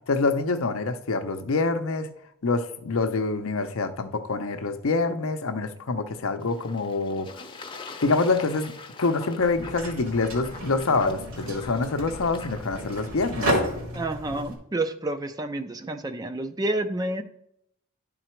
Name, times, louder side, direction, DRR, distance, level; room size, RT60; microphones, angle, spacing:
voice 1, 0.1-2.1 2.4-7.3 8.0-8.7 9.0-13.5, left 3 dB, 70° left, 0.6 m, -26 dB
Fowl / Bird / Water, 6.4-12.9, left 4 dB, 25° left, 0.6 m, -44 dB
sound 1, 9.4-14.5, right 1 dB, 70° right, 2.1 m, -32 dB
voice 2, 13.9-17.2, right 2 dB, 15° right, 0.4 m, -29 dB
11.0 x 3.9 x 4.4 m
head